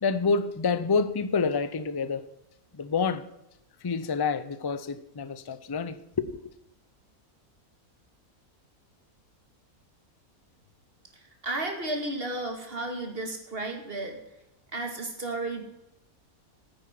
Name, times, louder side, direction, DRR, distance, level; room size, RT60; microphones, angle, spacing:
voice 1, 0.0-2.2 2.7-3.2 3.8-6.4, left 5 dB, 35° left, 0.4 m, -28 dB
voice 2, 11.1-14.2 14.7-15.6, right 2 dB, 40° right, 2.4 m, -33 dB
9.7 x 9.1 x 7.6 m
omnidirectional pair, 1.5 m